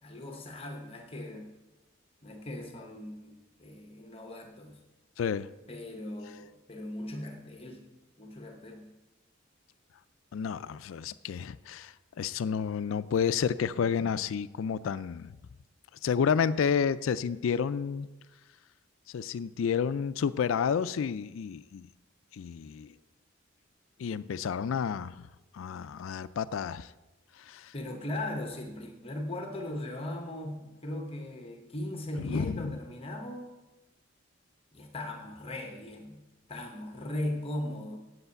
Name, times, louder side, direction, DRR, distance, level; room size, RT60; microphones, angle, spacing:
voice 1, 0.0-1.5 2.2-4.8 5.7-7.9 8.2-8.9 27.7-33.5 34.7-36.2 36.5-38.0, left 1 dB, 30° left, 4 dB, 0.9 m, -38 dB
voice 2, 5.2-5.5 10.3-15.3 16.0-18.1 19.1-21.9 22.3-22.9 24.0-25.3 25.5-26.9 27.4-27.7 32.2-32.8, left 7 dB, 75° left, 16 dB, 0.4 m, -30 dB
8.0 x 7.8 x 8.2 m, 1.1 s
head